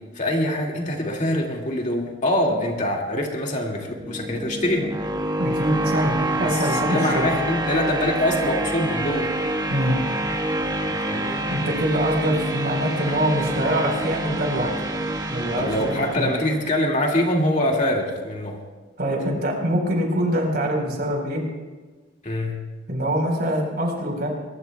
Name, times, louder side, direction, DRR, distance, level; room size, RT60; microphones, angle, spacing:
voice 1, 0.1-5.0 6.3-9.4 10.8-11.4 15.6-18.6 22.2-22.6, left 1 dB, 40° left, 0 dB, 2.3 m, -24 dB
sound 1, 3.8-16.8, right 1 dB, 20° right, 1.3 m, -27 dB
voice 2, 5.4-7.3 9.7-10.0 11.5-14.7 15.3-16.3 19.0-21.4 22.9-24.3, equal, 55° right, 1 dB, 4.4 m, -24 dB
22.5 x 21.5 x 2.3 m, 1.3 s
head